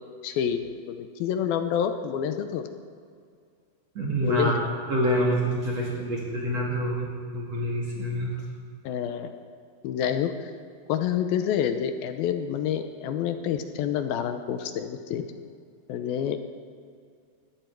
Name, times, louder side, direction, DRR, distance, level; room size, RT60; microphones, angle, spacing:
voice 1, 0.2-2.6 4.2-4.7 8.8-9.3 9.8-10.5 10.9-15.3 15.9-16.4, left 9 dB, 80° left, 8 dB, 2.4 m, -28 dB
voice 2, 3.9-4.5 4.9-8.3, equal, 45° right, -3 dB, 2.8 m, -27 dB
20.5 x 15.0 x 4.6 m, 2.3 s
omnidirectional pair, 4.6 m